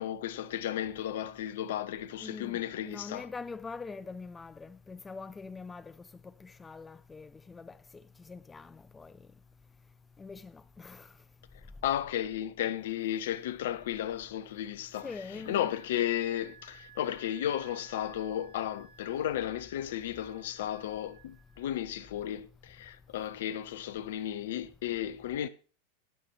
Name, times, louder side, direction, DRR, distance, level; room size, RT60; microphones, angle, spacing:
voice 1, 0.0-3.3 11.8-15.1 15.5-25.5, left 11 dB, 55° left, 0.7 m, -34 dB
voice 2, 2.2-5.9 6.2-9.1 10.2-11.1 15.0-15.7, left 4 dB, 15° left, 0.5 m, -44 dB
Wind instrument woodwind instrument, 14.9-22.3, right 6 dB, 50° right, 4.8 m, -57 dB
17.5 x 6.8 x 4.4 m
figure-of-eight pair, 90°, 0 cm